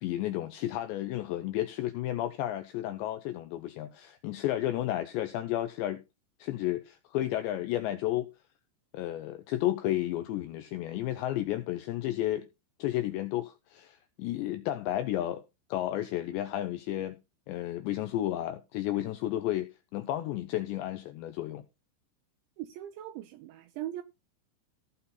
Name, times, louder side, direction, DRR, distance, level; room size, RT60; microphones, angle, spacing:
voice 1, 0.0-6.0 6.4-8.3 8.9-12.5 12.8-15.4 15.7-17.2 17.5-21.6, left 14 dB, 80° left, 2.5 m, -32 dB
voice 2, 22.6-24.0, right 13 dB, 80° right, 2.7 m, -40 dB
16.5 x 5.7 x 3.9 m
omnidirectional pair, 6.0 m